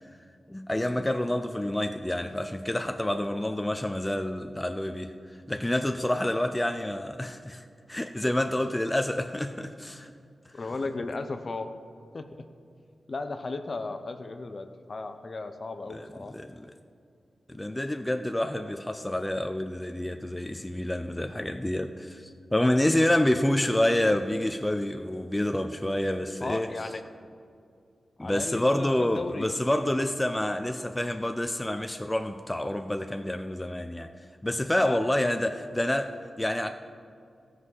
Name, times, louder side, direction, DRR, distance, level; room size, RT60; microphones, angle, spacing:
voice 1, 0.5-5.1 5.5-10.1 15.9-16.7 17.5-26.7 28.2-34.1 34.4-36.7, left 1 dB, 15° left, 7 dB, 0.5 m, -28 dB
voice 2, 10.5-11.7 12.1-12.4 13.1-16.3 26.4-27.0 28.2-29.5 34.8-35.4, left 3 dB, 50° left, 8 dB, 0.7 m, -35 dB
15.5 x 6.4 x 5.5 m, 2.3 s
cardioid pair, 75°, 0 cm